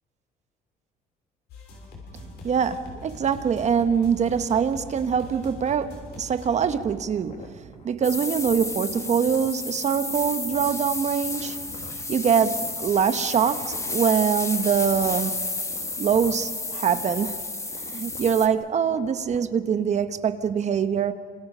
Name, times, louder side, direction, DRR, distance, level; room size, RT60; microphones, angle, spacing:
sound 1, 1.5-6.8, left 2 dB, 75° left, 6.3 m, -43 dB
voice 1, 2.4-15.4 16.0-17.4 17.8-21.1, right 7 dB, 45° right, 10 dB, 1.1 m, -24 dB
sound 2, 7.1-19.4, left 4 dB, 40° left, 2.1 m, -47 dB
sound 3, 8.0-18.5, left 3 dB, 15° left, 1.7 m, -31 dB
28.5 x 26.5 x 5.5 m, 2.1 s
cardioid pair, 110°, 17 cm